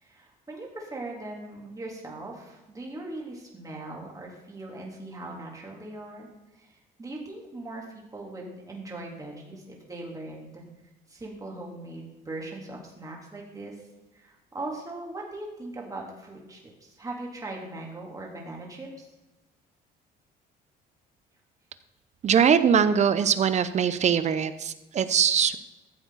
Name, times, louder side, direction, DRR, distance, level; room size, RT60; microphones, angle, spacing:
voice 1, 0.0-6.3 6.6-10.6 11.1-13.7 14.1-19.1, right 2 dB, 20° right, -2 dB, 3.4 m, -40 dB
voice 2, 22.2-25.6, right 7 dB, 45° right, 13 dB, 0.8 m, -22 dB
14.5 x 7.9 x 4.2 m, 1.0 s
cardioid pair, 110°, 17 cm